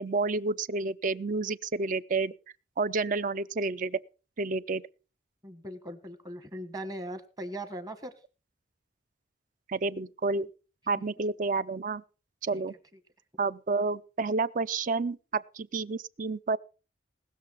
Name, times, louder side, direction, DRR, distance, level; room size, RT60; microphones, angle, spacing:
voice 1, 0.0-2.3 2.8-4.0 4.4-4.8 9.7-10.5 10.9-12.0 12.4-12.7 13.4-16.6, right 3 dB, 45° right, 0.5 m, -30 dB
voice 2, 5.4-8.1 12.5-12.6, right 1 dB, 20° right, 1.4 m, -39 dB
19.5 x 6.8 x 5.5 m
head